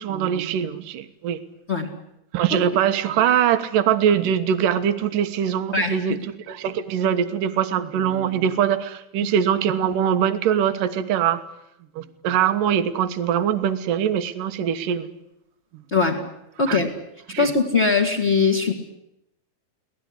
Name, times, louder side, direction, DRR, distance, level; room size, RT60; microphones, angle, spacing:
voice 1, 0.0-1.4 2.3-6.2 6.5-11.4 12.0-15.1 16.7-16.8 17.3-17.5, right 9 dB, 70° right, 10 dB, 2.9 m, -22 dB
voice 2, 16.6-16.9 17.4-18.7, left 4 dB, 20° left, 0 dB, 2.0 m, -20 dB
24.0 x 18.0 x 9.8 m, 0.82 s
omnidirectional pair, 4.2 m